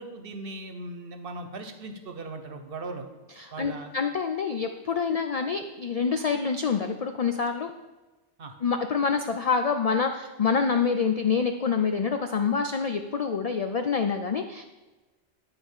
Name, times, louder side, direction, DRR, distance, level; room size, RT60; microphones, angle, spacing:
voice 1, 0.0-3.1 3.5-3.9 8.4-8.5, right 2 dB, 55° right, 6 dB, 1.0 m, -38 dB
voice 2, 3.4-7.7 8.6-14.6, left 5 dB, 65° left, 6 dB, 0.3 m, -26 dB
9.5 x 3.6 x 7.1 m, 1.1 s
omnidirectional pair, 1.2 m